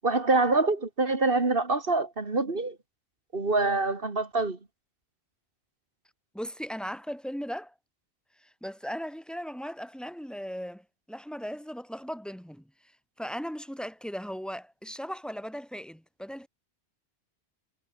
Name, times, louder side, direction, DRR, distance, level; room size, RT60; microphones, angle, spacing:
voice 1, 0.0-2.8 3.3-4.6, right 3 dB, 55° right, 2.6 m, -25 dB
voice 2, 6.3-7.7 8.4-12.6 13.2-16.5, equal, ahead, 4.8 m, -37 dB
omnidirectional pair, 1.1 m